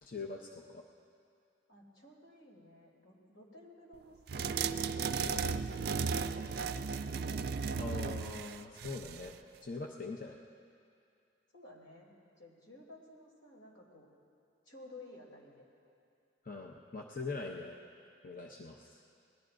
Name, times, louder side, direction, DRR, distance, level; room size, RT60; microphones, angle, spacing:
voice 1, 0.0-0.6 7.8-9.3 9.6-10.4 16.4-17.8 18.2-19.0, left 3 dB, 45° left, 1 dB, 0.7 m, -42 dB
voice 2, 1.7-7.0 11.5-14.1 14.6-15.7, left 1 dB, 85° left, -2 dB, 3.2 m, -55 dB
sound 1, 4.3-9.3, right 5 dB, 50° right, 0.4 m, -35 dB
28.0 x 19.5 x 2.6 m, 2.5 s
head